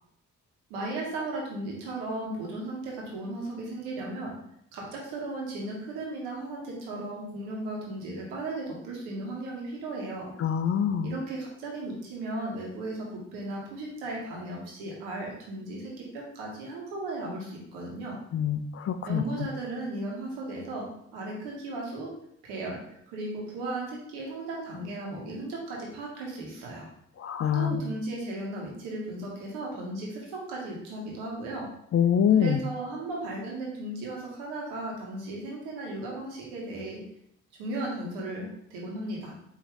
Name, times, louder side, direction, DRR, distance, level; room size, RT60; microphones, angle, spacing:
voice 1, 0.7-4.3 4.7-10.3 11.0-18.2 19.1-22.1 22.4-22.8 23.1-26.9 27.5-31.7 32.3-37.0 37.6-39.3, right 2 dB, 85° right, -2 dB, 1.1 m, -36 dB
voice 2, 10.4-11.2 18.3-19.2 27.2-27.8 31.9-32.6, left 8 dB, 40° left, 9 dB, 0.4 m, -25 dB
4.7 x 2.8 x 3.0 m, 0.72 s
hypercardioid pair, 40°, 37 cm